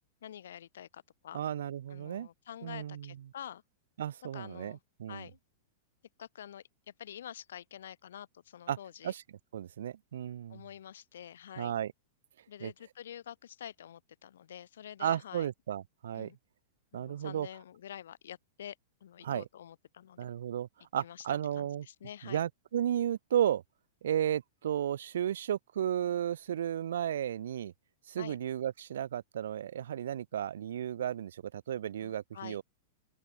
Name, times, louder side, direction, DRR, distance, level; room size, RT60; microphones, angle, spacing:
voice 1, 0.2-1.4 1.9-3.6 4.2-4.8 5.1-5.4 6.2-6.6 7.0-9.1 10.5-11.7 12.5-15.5 16.1-16.4 16.9-18.8 19.0-20.3 21.0-22.4 28.2-28.4 32.0-32.6, left 10 dB, 85° left, 0.9 m, -47 dB
voice 2, 1.3-2.3 2.6-3.1 4.0-5.3 8.7-8.8 9.0-9.2 9.5-10.6 11.6-11.9 12.6-12.7 15.0-16.3 16.9-17.5 19.2-19.4 20.2-21.8 22.2-23.6 24.0-27.7 28.1-32.6, right 10 dB, 85° right, 0.5 m, -34 dB
supercardioid pair, 180°, 0 cm